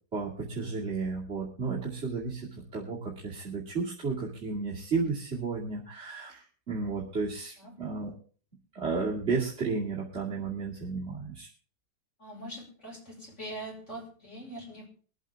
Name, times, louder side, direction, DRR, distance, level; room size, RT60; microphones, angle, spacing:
voice 1, 0.1-8.1 8.7-11.5, right 4 dB, 40° right, -7 dB, 2.9 m, -33 dB
voice 2, 12.2-14.9, right 1 dB, 40° left, -3 dB, 6.1 m, -42 dB
24.5 x 8.2 x 3.6 m, 0.40 s
omnidirectional pair, 1.8 m